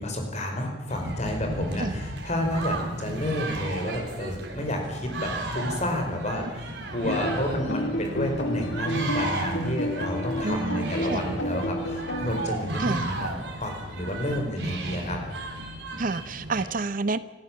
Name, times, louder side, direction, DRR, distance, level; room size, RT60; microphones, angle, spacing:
voice 1, 0.0-15.2, left 1 dB, 40° left, 3 dB, 4.6 m, -30 dB
sound 1, 0.9-16.6, right 2 dB, 75° right, 3.9 m, -34 dB
sound 2, 7.1-12.5, equal, 85° left, 2.4 m, -31 dB
voice 2, 10.4-11.2 12.8-13.1 16.0-17.2, right 3 dB, 50° right, 14 dB, 0.7 m, -29 dB
26.5 x 14.0 x 7.5 m, 1.2 s
head